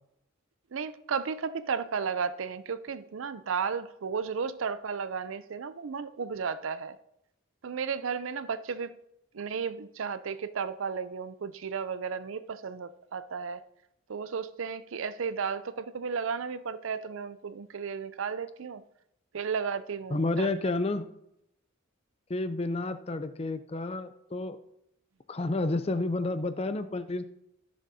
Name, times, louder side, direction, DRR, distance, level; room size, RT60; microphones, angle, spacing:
voice 1, 0.7-7.0 7.6-9.0 9.3-13.6 14.1-18.8 19.3-20.5, right 6 dB, 70° right, 14 dB, 0.5 m, -34 dB
voice 2, 20.1-21.1 22.3-24.6 25.3-27.3, left 2 dB, 30° left, 11 dB, 0.4 m, -30 dB
14.5 x 6.6 x 2.7 m, 0.80 s
head